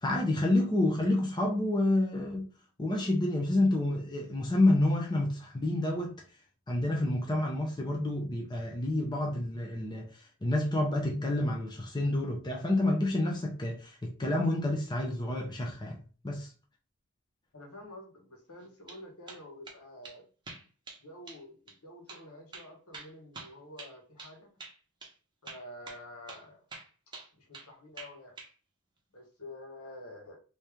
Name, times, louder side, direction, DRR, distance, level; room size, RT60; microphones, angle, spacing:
voice 1, 0.0-2.5 2.8-6.1 6.7-16.0 16.2-16.5, left 1 dB, 20° left, 0.7 m, -29 dB
voice 2, 17.5-20.2 21.0-24.5 25.4-26.6 27.3-28.4 29.1-30.4, left 1 dB, 75° left, 1.4 m, -48 dB
sound 1, 18.6-19.0 19.3-19.8 20.0-20.2 20.5-21.0 21.3-21.4 21.7-21.8 22.1-22.2 22.5-24.3 24.6-24.8 25.0-25.1 25.5-26.0 26.3-26.4 26.7-27.7 28.0-28.5, right 3 dB, 20° right, 0.8 m, -46 dB
3.3 x 2.8 x 3.4 m
head